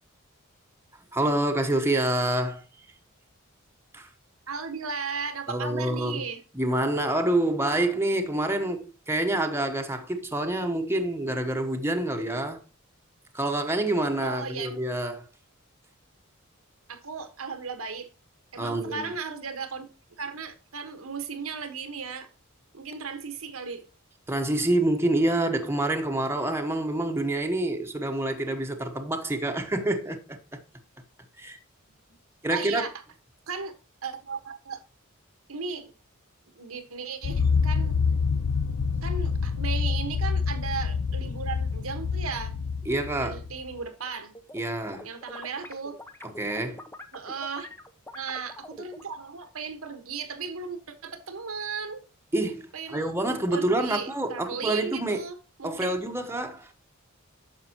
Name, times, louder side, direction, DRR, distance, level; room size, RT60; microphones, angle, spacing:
voice 1, 1.1-2.6 3.9-4.1 5.5-6.2 6.5-12.6 13.3-15.3 18.6-19.1 24.3-30.6 31.4-31.6 32.4-32.8 42.9-43.4 44.5-45.1 46.4-46.8 52.3-55.2 55.6-56.7, right 1 dB, 10° right, 1.0 m, -27 dB
voice 2, 4.5-6.4 14.2-14.8 16.9-18.1 18.5-19.9 20.2-22.3 22.7-23.8 32.5-32.9 33.5-33.7 34.0-34.8 35.5-35.9 36.5-38.0 39.0-42.5 43.2-44.3 45.0-46.0 47.1-47.7 48.1-52.0 52.7-53.2 53.5-56.0, right 5 dB, 90° right, 1.4 m, -36 dB
sound 1, 37.2-43.7, left 5 dB, 90° left, 0.5 m, -27 dB
sound 2, 44.1-44.6 44.9-49.1, left 1 dB, 10° left, 0.7 m, -44 dB
9.7 x 6.8 x 2.9 m
head